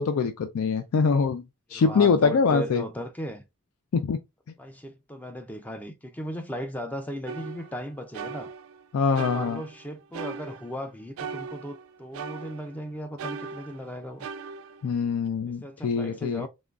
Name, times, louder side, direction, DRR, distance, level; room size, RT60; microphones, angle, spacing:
voice 1, 0.0-1.4 1.7-2.8 3.9-4.2 8.9-9.6 14.8-16.5, left 5 dB, 85° left, 0.4 m, -24 dB
voice 2, 1.7-3.4 4.6-8.5 9.1-14.3 15.5-16.5, equal, 10° left, 0.3 m, -37 dB
sound 1, 7.3-8.8 9.2-10.9 11.2-12.8 13.2-15.3, right 5 dB, 80° right, 0.4 m, -39 dB
3.7 x 3.0 x 2.3 m
head